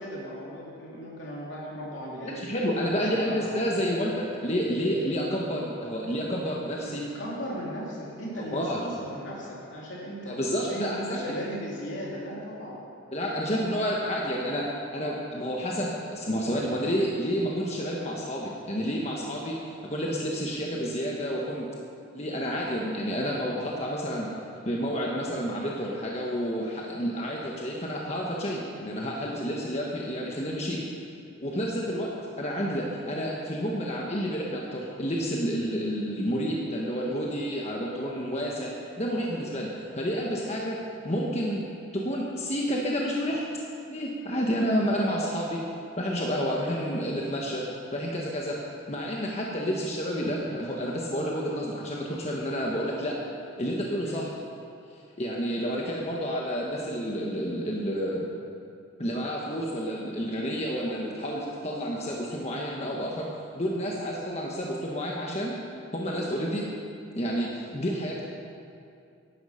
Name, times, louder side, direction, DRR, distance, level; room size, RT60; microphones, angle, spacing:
voice 1, 0.0-2.5 2.9-3.6 6.8-12.8 13.4-13.9 49.6-49.8 54.0-54.2, equal, 65° left, -5 dB, 3.1 m, -37 dB
voice 2, 2.2-7.0 8.4-8.8 10.3-11.4 13.1-19.6 19.8-21.7 22.1-24.3 24.6-30.8 31.4-38.7 39.0-41.6 41.9-43.4 43.9-45.6 46.0-47.6 47.9-48.6 48.9-53.2 53.6-54.3 55.2-58.2 59.0-63.3 63.5-65.6 65.9-66.7 67.1-68.2, equal, 30° left, -3 dB, 1.4 m, -30 dB
15.0 x 11.5 x 5.7 m, 2.5 s
head